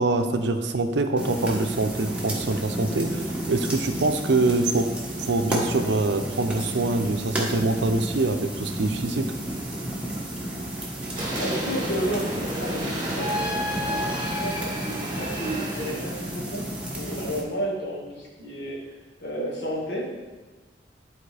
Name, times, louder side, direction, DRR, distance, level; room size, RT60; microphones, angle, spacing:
voice 1, 0.0-4.9 5.2-9.3, right 2 dB, 70° right, 6 dB, 0.6 m, -24 dB
sound 1, 1.2-17.4, right 1 dB, 5° right, 1.3 m, -32 dB
sound 2, 11.2-16.6, equal, 25° right, 1.7 m, -31 dB
voice 2, 11.4-13.4 13.9-16.7 17.0-18.8 19.2-20.0, equal, 70° left, -3 dB, 1.9 m, -32 dB
11.0 x 4.3 x 3.4 m, 1.3 s
head